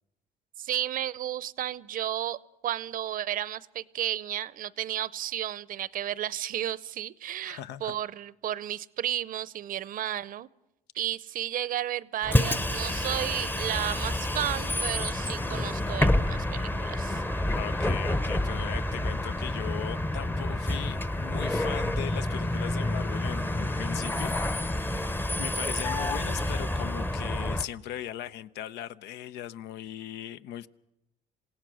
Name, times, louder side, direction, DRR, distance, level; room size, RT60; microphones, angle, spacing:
voice 1, 0.6-10.5 10.9-17.2, right 11 dB, 55° right, 20 dB, 0.7 m, -33 dB
voice 2, 7.4-7.9 17.6-24.3 25.4-30.7, left 11 dB, 85° left, 15 dB, 0.7 m, -38 dB
Bus, 12.2-27.7, left 1 dB, 10° left, 0.8 m, -28 dB
27.5 x 17.0 x 6.3 m, 0.90 s
cardioid pair, 110°, 17 cm